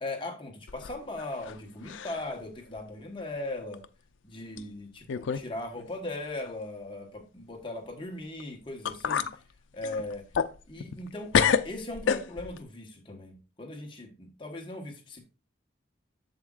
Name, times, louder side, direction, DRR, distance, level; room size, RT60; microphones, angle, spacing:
voice 1, 0.0-3.8 4.2-9.3 9.7-10.2 10.7-11.3 11.6-15.2, left 2 dB, 25° left, 1.1 m, -38 dB
sound 1, 0.7-1.6 1.9-2.3 2.8-2.9 3.7-3.9 4.6-4.7 5.1-5.5 5.8-5.9 8.4-8.5 8.9-9.4 9.8-11.1 11.3-12.6, left 7 dB, 80° left, 0.4 m, -28 dB
7.7 x 7.1 x 2.4 m
head